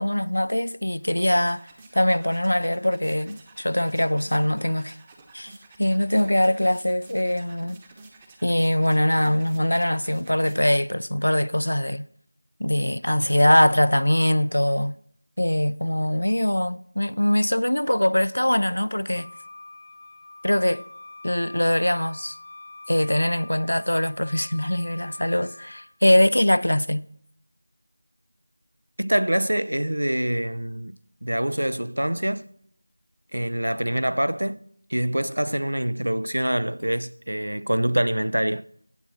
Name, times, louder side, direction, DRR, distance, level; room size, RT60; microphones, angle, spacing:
voice 1, 0.0-1.6 1.9-5.0 5.3-7.8 8.4-12.1 12.6-15.0 15.4-19.3 20.4-20.8 21.2-22.4 22.9-27.1, left 1 dB, 75° left, 0.5 m, -22 dB
sound 1, 0.8-10.9, right 3 dB, 15° right, 1.0 m, -51 dB
Wind instrument woodwind instrument, 19.1-25.9, left 2 dB, 40° left, 0.7 m, -45 dB
voice 2, 29.0-32.5 33.3-34.6 34.9-38.6, right 1 dB, 75° right, 0.6 m, -25 dB
16.5 x 7.7 x 4.2 m
figure-of-eight pair, 170°, 0 cm